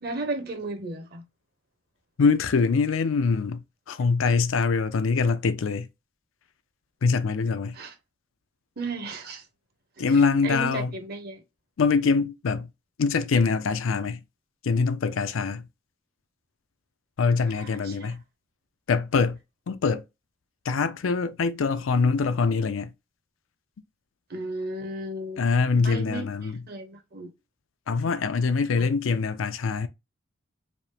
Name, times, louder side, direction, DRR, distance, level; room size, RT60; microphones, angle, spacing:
voice 1, 0.0-1.2 7.7-7.9 8.8-9.4 10.0-11.4 17.5-18.1 24.3-25.5 25.7-27.3 28.8-28.9, right 2 dB, 50° right, 1.0 m, -35 dB
voice 2, 2.2-5.9 7.0-7.8 10.0-10.9 11.8-12.7 13.0-14.2 14.6-15.6 17.2-18.2 18.9-19.4 19.7-20.0 20.7-22.9 25.4-26.5 27.9-29.9, left 4 dB, 80° left, 0.5 m, -24 dB
4.9 x 2.1 x 3.3 m
head